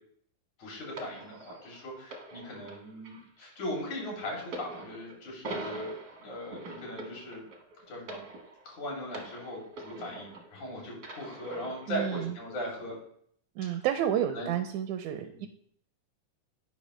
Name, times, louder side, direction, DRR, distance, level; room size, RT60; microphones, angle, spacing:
voice 1, 0.6-7.4 7.9-8.2 8.7-13.0 14.3-14.5 15.3-15.5, equal, 65° left, -3 dB, 4.1 m, -39 dB
sound 1, 1.0-10.6 11.0-12.0 12.8-13.0, right 2 dB, 60° right, 1.0 m, -44 dB
voice 2, 11.9-12.3 13.6-15.5, right 10 dB, 80° right, 7 dB, 1.8 m, -30 dB
10.5 x 5.3 x 3.1 m, 0.64 s
omnidirectional pair, 3.6 m